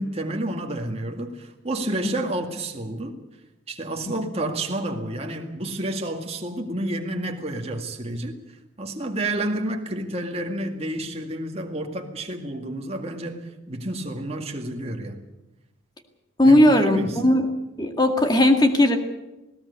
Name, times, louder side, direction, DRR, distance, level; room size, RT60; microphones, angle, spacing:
voice 1, 0.0-3.2 3.7-8.4 8.8-15.2 16.5-16.6 16.9-17.2, right 1 dB, 30° right, 2.1 m, -30 dB
voice 2, 16.4-17.5 17.8-19.0, left 1 dB, 20° left, 2.0 m, -17 dB
19.5 x 18.0 x 8.3 m
head